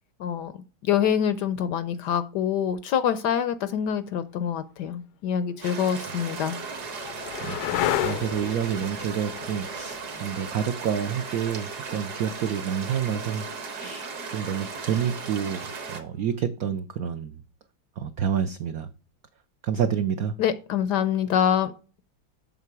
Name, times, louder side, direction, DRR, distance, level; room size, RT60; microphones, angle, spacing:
voice 1, 0.2-0.5 0.8-6.6 20.4-21.7, left 9 dB, 75° left, 13 dB, 1.0 m, -25 dB
sound 1, 4.6-4.7 5.5-13.1 15.4-16.0, left 12 dB, 90° left, 1.4 m, -34 dB
sound 2, 5.6-16.0, right 5 dB, 55° right, 1.8 m, -36 dB
voice 2, 7.4-13.5 13.8-17.4 18.0-18.9 19.6-20.3, right 8 dB, 80° right, 10 dB, 0.8 m, -29 dB
7.6 x 6.6 x 4.7 m, 0.37 s
omnidirectional pair, 2.2 m